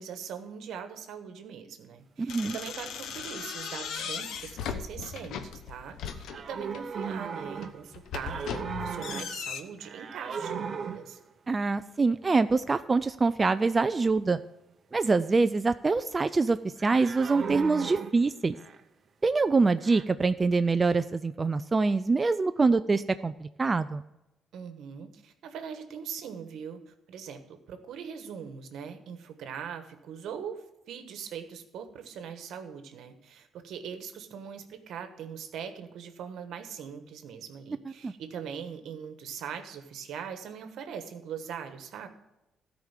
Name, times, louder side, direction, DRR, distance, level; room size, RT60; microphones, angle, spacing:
voice 1, 0.0-11.2 24.5-42.1, right 7 dB, 80° right, 8 dB, 1.2 m, -41 dB
voice 2, 2.2-2.6 11.5-14.4 14.9-18.5 19.2-24.0 38.0-38.1, right 4 dB, 30° right, 11 dB, 0.3 m, -25 dB
sound 1, 2.3-6.9 7.4-9.6, left 7 dB, 80° left, 0.8 m, -37 dB
sound 2, 6.3-7.9 8.2-9.5 9.8-11.2 16.8-18.8 19.8-20.0, right 6 dB, 50° right, 0.8 m, -37 dB
13.0 x 5.0 x 7.3 m, 0.95 s
cardioid pair, 90°, 0 cm